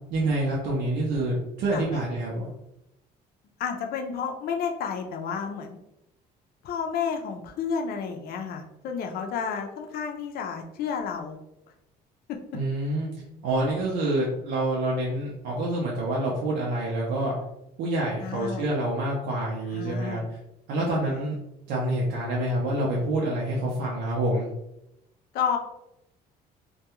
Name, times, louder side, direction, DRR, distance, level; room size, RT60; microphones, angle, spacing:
voice 1, 0.1-2.5 12.5-13.1 13.4-17.3 17.8-20.2 20.7-21.4 21.7-24.5, right 1 dB, 80° right, -4 dB, 0.6 m, -27 dB
voice 2, 1.7-2.0 3.6-5.8 6.6-11.4 12.3-12.4 18.2-18.7 19.7-20.2 21.0-21.2 25.3-25.6, left 6 dB, 65° left, 3 dB, 0.5 m, -31 dB
2.3 x 2.2 x 2.9 m, 0.86 s
cardioid pair, 110°, 17 cm